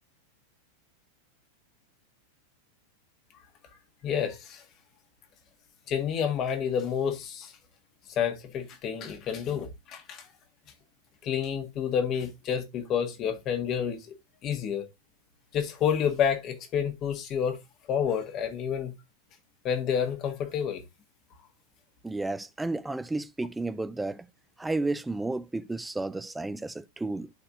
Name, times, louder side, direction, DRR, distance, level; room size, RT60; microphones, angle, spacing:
voice 1, 4.0-4.6 5.9-7.5 8.2-10.3 11.2-14.1 14.4-14.9 15.5-17.6 17.9-18.9 19.6-20.8, left 8 dB, 35° left, 1.7 m, -29 dB
voice 2, 22.0-24.3 24.6-27.3, right 2 dB, 5° right, 0.5 m, -32 dB
12.5 x 4.4 x 2.6 m
figure-of-eight pair, 90°, 0 cm